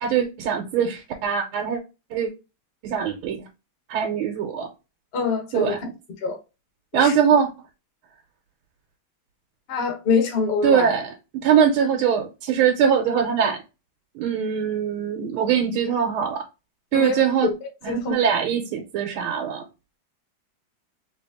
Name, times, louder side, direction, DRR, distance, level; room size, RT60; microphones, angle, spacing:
voice 1, 0.0-1.8 2.1-2.3 2.8-3.4 3.9-4.7 5.5-5.9 6.9-7.5 10.6-11.1 11.4-13.6 14.1-16.4 16.9-17.5 17.8-19.6, right 7 dB, 90° right, 1.6 m, -22 dB
voice 2, 5.1-5.7 6.2-6.4 7.0-7.1 9.7-10.9 16.9-17.5 17.9-18.1, left 5 dB, 45° left, 0.8 m, -24 dB
3.2 x 3.1 x 3.4 m
omnidirectional pair, 2.3 m